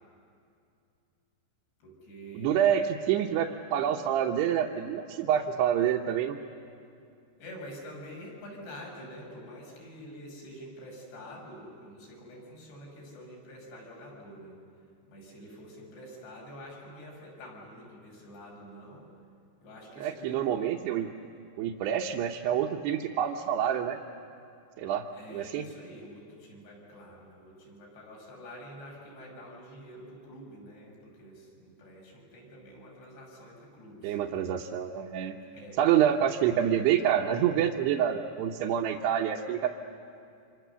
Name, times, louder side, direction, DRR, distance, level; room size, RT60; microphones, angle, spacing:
voice 1, 1.8-2.8 7.4-14.6 15.1-19.1 19.6-20.5 25.1-34.2 35.5-35.8, equal, 65° left, -2 dB, 7.9 m, -47 dB
voice 2, 2.3-6.4 20.0-21.1 21.6-24.0 24.8-25.1 25.3-25.6 34.0-35.3 35.8-39.7, right 9 dB, 75° right, -1 dB, 2.8 m, -27 dB
29.0 x 26.0 x 6.9 m, 2.4 s
omnidirectional pair, 5.1 m